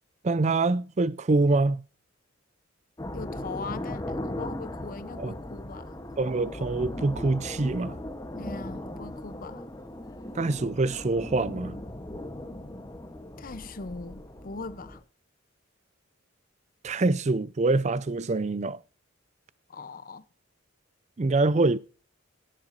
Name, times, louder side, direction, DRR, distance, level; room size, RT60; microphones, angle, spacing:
voice 1, 0.2-1.8 5.2-5.3 6.2-8.0 10.3-11.8 16.8-18.8 21.2-21.8, right 3 dB, 35° right, 0.5 m, -25 dB
sound 1, 3.0-15.0, left 1 dB, 20° left, 1.0 m, -38 dB
voice 2, 3.1-6.0 8.4-9.7 13.4-15.0 19.7-20.2, left 3 dB, 45° left, 0.7 m, -40 dB
17.0 x 7.6 x 2.6 m
head